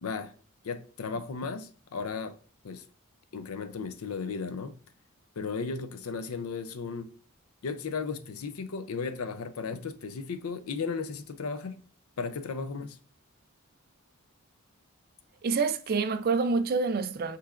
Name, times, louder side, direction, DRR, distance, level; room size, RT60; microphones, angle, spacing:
voice 1, 0.0-0.3 0.6-2.4 2.6-2.8 3.3-4.7 5.4-7.1 7.6-11.8 12.2-13.0, left 5 dB, 85° left, 0.5 m, -35 dB
voice 2, 15.4-17.4, right 4 dB, 45° right, 0.4 m, -27 dB
5.6 x 3.2 x 2.4 m
head